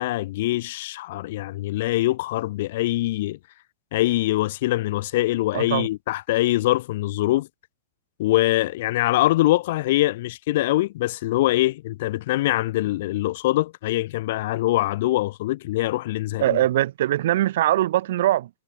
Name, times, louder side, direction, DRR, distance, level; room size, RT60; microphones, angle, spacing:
voice 1, 0.0-3.4 3.9-7.5 8.2-16.6, left 16 dB, 55° left, 0.9 m, -23 dB
voice 2, 5.5-5.9 16.4-18.5, right 14 dB, 65° right, 0.4 m, -21 dB
supercardioid pair, 170°, 0 cm